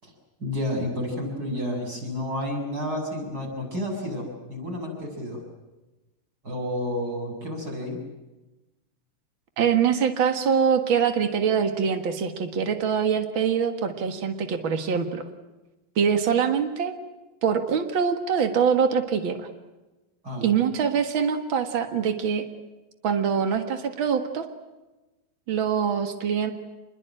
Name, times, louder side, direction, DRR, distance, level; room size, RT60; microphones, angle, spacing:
voice 1, 0.4-5.4 6.4-8.0 20.2-20.5, left 1 dB, 20° right, 1 dB, 7.5 m, -30 dB
voice 2, 9.6-15.2 15.9-16.9 17.4-19.5 20.4-22.4 23.0-24.4 25.5-26.5, right 7 dB, 85° right, 7 dB, 1.1 m, -24 dB
27.5 x 22.0 x 9.0 m, 1.1 s
omnidirectional pair, 5.0 m